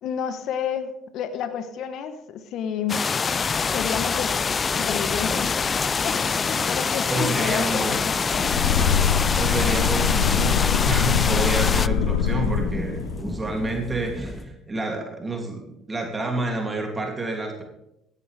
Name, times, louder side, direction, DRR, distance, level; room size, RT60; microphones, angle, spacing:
voice 1, 0.0-3.0 3.7-4.4 4.7-5.6 6.0-6.2 6.4-9.1, left 7 dB, 65° left, 10 dB, 1.1 m, -31 dB
sound 1, 2.9-11.9, left 5 dB, 35° left, 0.3 m, -25 dB
sound 2, 3.3-14.5, left 1 dB, 15° left, 1.6 m, -35 dB
voice 2, 7.1-8.1 9.4-17.6, right 2 dB, 25° right, 1 dB, 2.7 m, -29 dB
sound 3, 8.3-13.2, left 8 dB, 85° left, 0.6 m, -23 dB
16.0 x 11.0 x 3.5 m, 0.85 s
hypercardioid pair, 65°, 0 cm